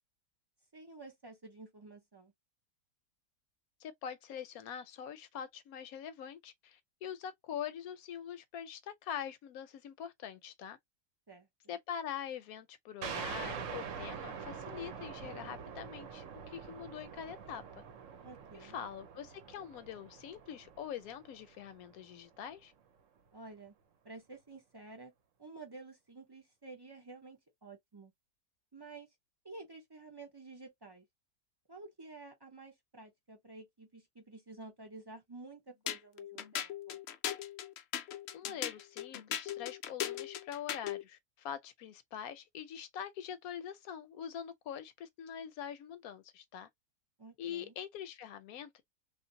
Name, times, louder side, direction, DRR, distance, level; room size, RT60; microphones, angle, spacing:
voice 1, 0.7-2.3 11.3-11.8 18.2-18.8 23.3-23.7 24.0-25.1 25.4-28.1 28.7-29.1 29.4-31.0 31.7-37.0 47.2-47.7, right 3 dB, 35° right, 0.4 m, -51 dB
voice 2, 3.8-10.8 11.7-17.8 18.5-22.7 38.3-46.7 47.4-48.8, left 9 dB, 70° left, 1.0 m, -44 dB
sound 1, 13.0-22.2, right 7 dB, 60° right, 0.9 m, -45 dB
sound 2, 35.9-41.0, left 10 dB, 90° left, 0.5 m, -38 dB
3.3 x 2.5 x 2.7 m
omnidirectional pair, 1.7 m